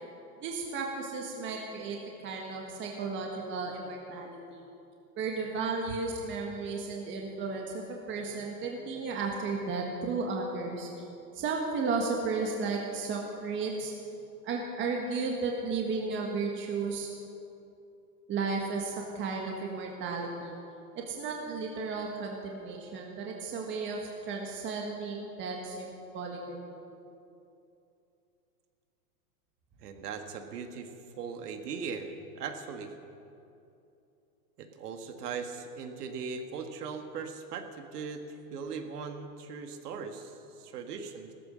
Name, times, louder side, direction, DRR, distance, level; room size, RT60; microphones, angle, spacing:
voice 1, 0.4-2.0 2.2-4.7 5.2-10.9 11.3-13.9 14.4-17.1 18.3-20.6 20.9-26.7, right 4 dB, 25° right, 0 dB, 1.6 m, -34 dB
voice 2, 29.8-30.9 31.2-32.9 34.6-41.3, right 5 dB, 75° right, 6 dB, 1.9 m, -39 dB
16.5 x 14.0 x 6.3 m, 2.7 s
supercardioid pair, 145°, 47 cm